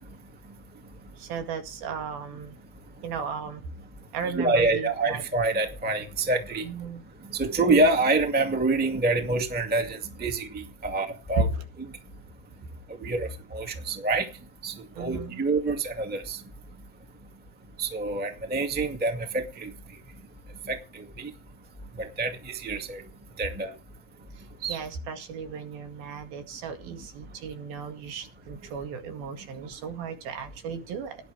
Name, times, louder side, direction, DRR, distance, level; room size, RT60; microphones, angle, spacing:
voice 1, 1.2-2.5 3.0-3.6 4.1-5.2 6.6-7.0 15.0-15.4 24.7-31.2, right 6 dB, 90° right, 5 dB, 4.0 m, -36 dB
voice 2, 4.3-6.6 7.3-11.5 13.0-14.2 14.6-16.4 17.8-19.7 20.7-20.8 21.2-21.3 22.2-23.0 23.4-23.7 24.6-24.8, right 2 dB, 5° right, 4 dB, 1.0 m, -26 dB
18.0 x 10.5 x 3.4 m, 0.31 s
omnidirectional pair, 4.1 m